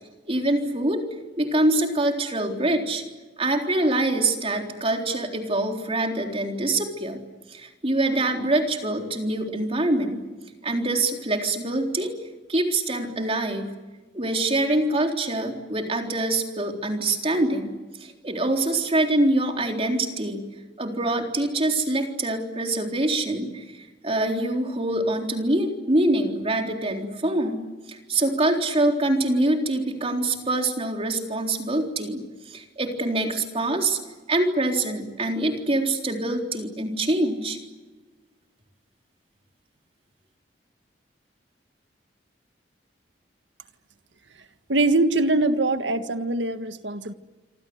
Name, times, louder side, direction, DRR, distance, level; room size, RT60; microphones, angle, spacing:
voice 1, 0.3-1.0 1.4-3.0 3.4-7.2 7.5-10.2 10.6-12.1 12.5-13.8 14.1-17.7 18.0-20.5 20.8-23.6 24.0-27.6 27.9-34.0 34.3-37.6, right 2 dB, 35° right, 3 dB, 3.9 m, -24 dB
voice 2, 44.7-47.1, right 2 dB, 85° right, 9 dB, 1.7 m, -23 dB
26.5 x 26.0 x 8.0 m, 1.3 s
head